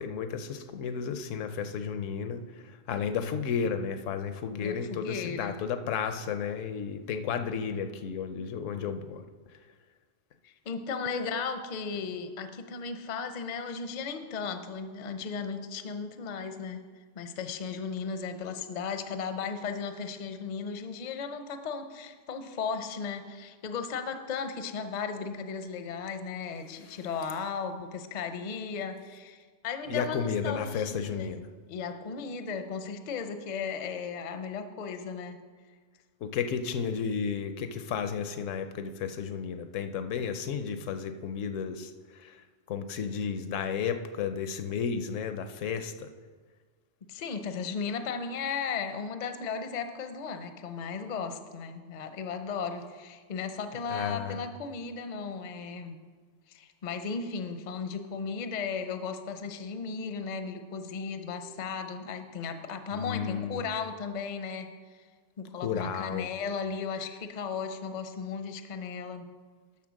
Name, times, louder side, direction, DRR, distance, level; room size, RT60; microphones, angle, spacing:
voice 1, 0.0-9.2 29.9-31.4 36.2-41.9 42.2-42.4 42.7-46.1 53.9-54.4 62.9-63.6 65.6-66.3, left 6 dB, 75° left, 9 dB, 0.9 m, -33 dB
voice 2, 4.6-5.6 10.4-16.8 17.1-31.3 31.7-35.4 47.1-56.0 56.5-64.7 64.9-65.0 65.4-69.3, left 5 dB, 45° left, 8 dB, 0.6 m, -36 dB
11.5 x 4.3 x 6.2 m, 1.5 s
omnidirectional pair, 1.3 m